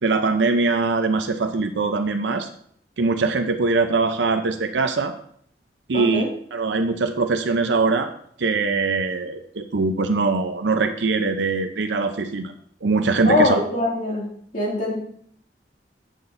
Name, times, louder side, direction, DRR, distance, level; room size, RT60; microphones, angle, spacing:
voice 1, 0.0-2.5 3.0-5.1 5.9-8.1 8.4-12.5 12.8-13.6, right 3 dB, 85° right, 6 dB, 0.7 m, -22 dB
voice 2, 5.9-6.3 13.3-14.3 14.5-15.0, left 2 dB, 45° left, -3 dB, 2.4 m, -22 dB
11.0 x 7.6 x 2.6 m, 0.63 s
head